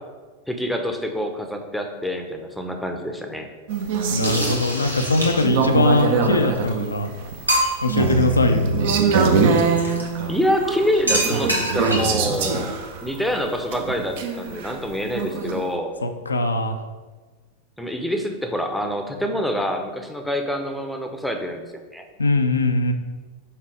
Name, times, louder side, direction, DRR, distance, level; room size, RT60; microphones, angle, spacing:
voice 1, 0.5-3.5 10.3-12.8 13.0-15.9 17.8-21.6 21.9-22.1, equal, ahead, 4 dB, 0.7 m, -26 dB
sound 1, 3.7-15.6, right 5 dB, 55° right, 0.7 m, -23 dB
voice 2, 4.1-7.1 7.8-8.7 16.0-16.8 22.2-22.9, left 2 dB, 75° left, 6 dB, 0.5 m, -21 dB
sound 2, 4.2-5.7 6.6-6.7 7.0-7.1 7.5-8.0 9.8-10.0 11.1-12.2, right 1 dB, 90° right, 1.0 m, -25 dB
5.8 x 4.1 x 4.7 m, 1.3 s
figure-of-eight pair, 90°, 0 cm